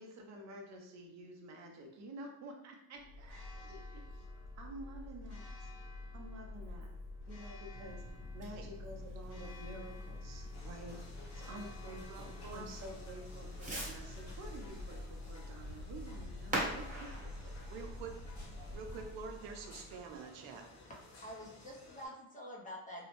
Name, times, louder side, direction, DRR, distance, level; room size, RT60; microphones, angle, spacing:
voice 1, 0.0-4.2 4.6-5.7 6.1-6.9 7.3-8.0 8.3-17.3, right 1 dB, 40° right, 2 dB, 0.6 m, -50 dB
Church bell, 3.0-20.2, left 2 dB, 75° left, 1.1 m, -48 dB
Fireworks, 7.7-19.1, right 1 dB, 20° right, 1.1 m, -46 dB
sound 1, 10.5-22.1, left 1 dB, 40° left, 0.8 m, -56 dB
voice 2, 12.1-12.6 17.7-18.2 18.7-20.7, right 5 dB, 85° right, 4 dB, 0.6 m, -46 dB
voice 3, 21.2-23.1, equal, 20° left, -2 dB, 0.4 m, -47 dB
2.7 x 2.1 x 2.9 m, 0.90 s
cardioid pair, 125°, 42 cm